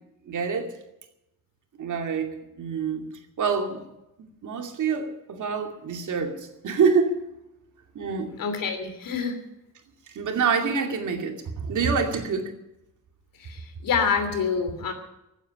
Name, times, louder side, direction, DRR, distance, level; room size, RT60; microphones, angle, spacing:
voice 1, 0.3-0.7 1.8-2.3 2.6-3.0 3.4-3.8 4.4-7.2 7.9-8.3 10.1-12.5, right 5 dB, 60° right, 4 dB, 2.5 m, -26 dB
voice 2, 8.4-9.4 13.4-14.9, left 6 dB, 75° left, 8 dB, 3.0 m, -27 dB
15.5 x 9.2 x 9.9 m, 0.90 s
wide cardioid pair, 170°, 34 cm